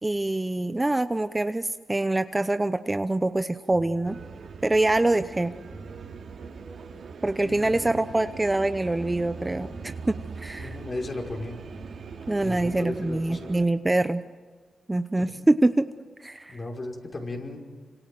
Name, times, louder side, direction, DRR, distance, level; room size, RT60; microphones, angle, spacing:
voice 1, 0.0-4.2 4.6-5.6 7.2-10.7 12.3-14.2 14.9-15.9 16.2-16.6, right 2 dB, 15° right, 10 dB, 0.8 m, -25 dB
sound 1, 3.7-4.9 5.7-6.9 7.7-8.9 9.7-10.9 11.7-12.9, right 5 dB, 15° left, 5.6 m, -49 dB
sound 2, 4.0-13.6, right 5 dB, 70° right, 3.3 m, -41 dB
voice 2, 7.4-7.8 10.6-11.6 12.4-13.5 15.2-15.3 16.5-17.6, left 2 dB, 40° left, 1 dB, 5.3 m, -35 dB
28.0 x 26.0 x 7.7 m, 1.4 s
cardioid pair, 85°, 0 cm